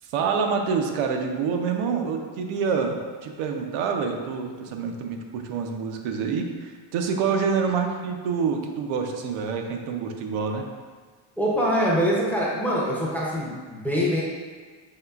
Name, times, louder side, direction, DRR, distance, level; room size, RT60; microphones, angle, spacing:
voice 1, 0.0-10.6, right 5 dB, 85° right, 3 dB, 0.6 m, -27 dB
voice 2, 11.4-14.2, equal, 5° left, -5 dB, 0.5 m, -24 dB
5.5 x 3.2 x 2.3 m, 1.5 s
cardioid pair, 145°, 47 cm